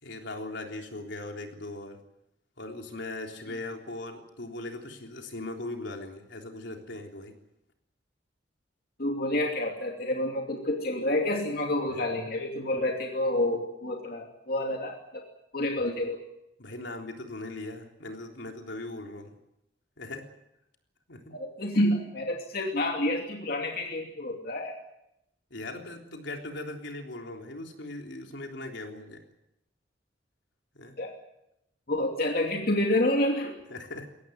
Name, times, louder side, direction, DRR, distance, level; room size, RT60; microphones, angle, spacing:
voice 1, 0.0-2.0 2.6-7.4 11.9-12.1 15.8-15.9 16.6-19.4 20.0-20.3 21.1-21.3 25.5-29.2 30.7-31.0 33.7-34.1, left 2 dB, 75° left, 3 dB, 3.7 m, -39 dB
voice 2, 9.0-15.2 15.5-16.2 21.3-24.8 31.0-31.1 31.9-33.5, left 1 dB, 50° left, 2 dB, 2.7 m, -28 dB
22.5 x 17.5 x 9.3 m, 0.85 s
head